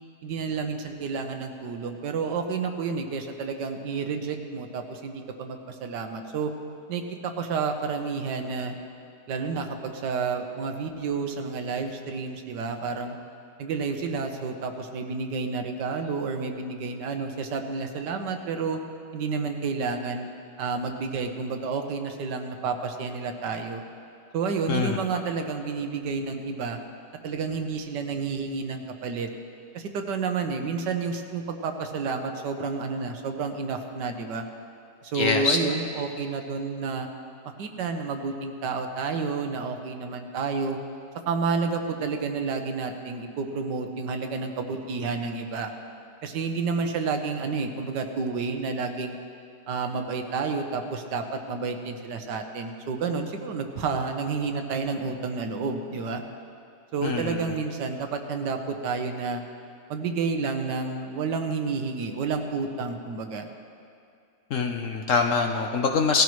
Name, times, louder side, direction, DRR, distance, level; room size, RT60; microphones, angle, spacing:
voice 1, 0.2-6.5 6.9-8.7 9.3-13.2 13.6-18.8 19.1-20.3 20.6-23.8 24.3-26.8 27.2-29.3 29.7-34.4 35.0-37.1 37.6-40.8 41.3-45.7 46.2-49.2 49.7-56.2 56.9-59.4 59.9-63.5, right 4 dB, 80° right, 5 dB, 1.5 m, -30 dB
voice 2, 35.1-35.6 57.0-57.4 64.5-66.2, left 5 dB, 60° left, 4 dB, 0.9 m, -24 dB
17.5 x 13.5 x 3.1 m, 2.4 s
omnidirectional pair, 1.8 m